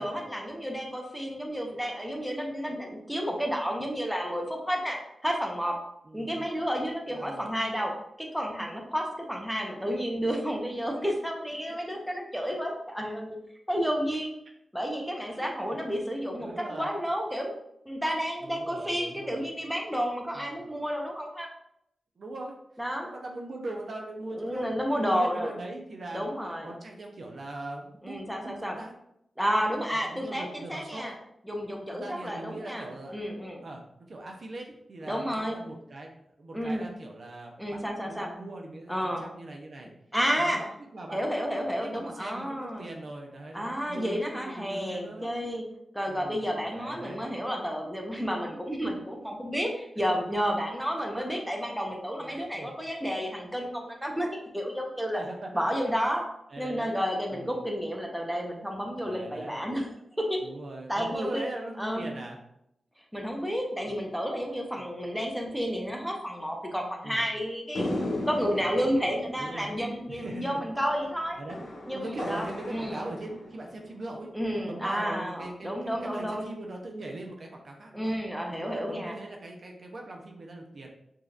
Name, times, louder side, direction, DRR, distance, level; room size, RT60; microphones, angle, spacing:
voice 1, 0.0-5.8 6.1-7.9 8.2-13.4 13.7-14.3 14.7-17.5 17.9-21.5 22.8-23.1 24.3-25.5 26.1-26.7 28.0-28.8 29.4-31.1 31.5-33.6 35.0-35.6 36.5-36.9 37.6-38.3 38.9-39.3 40.1-40.6 41.1-42.9 43.5-45.6 45.9-55.2 55.5-56.2 56.6-59.9 60.2-60.4 60.9-61.4 61.8-62.1 63.1-71.4 71.9-73.0 74.3-76.5 77.9-79.1, equal, ahead, 0 dB, 0.8 m, -31 dB
voice 2, 6.1-6.5 7.1-7.5 11.7-12.0 12.4-12.6 15.3-15.9 16.4-17.0 18.4-19.5 20.3-20.7 22.2-22.5 23.0-26.2 26.6-28.9 30.1-31.2 31.9-33.1 33.6-39.9 40.4-40.7 40.9-41.2 41.7-45.2 46.1-47.3 50.0-50.2 51.1-51.3 52.2-52.7 55.1-56.0 56.5-57.0 57.3-57.7 59.0-59.7 60.4-62.4 63.9-64.0 64.8-64.9 67.0-67.3 69.4-69.8 70.1-70.6 71.4-71.6 71.9-78.1 78.5-80.9, right 2 dB, 60° right, 1 dB, 0.6 m, -41 dB
sound 1, 67.7-74.2, left 1 dB, 75° left, 0.9 m, -37 dB
4.9 x 2.8 x 2.4 m, 0.77 s
cardioid pair, 75°, 0 cm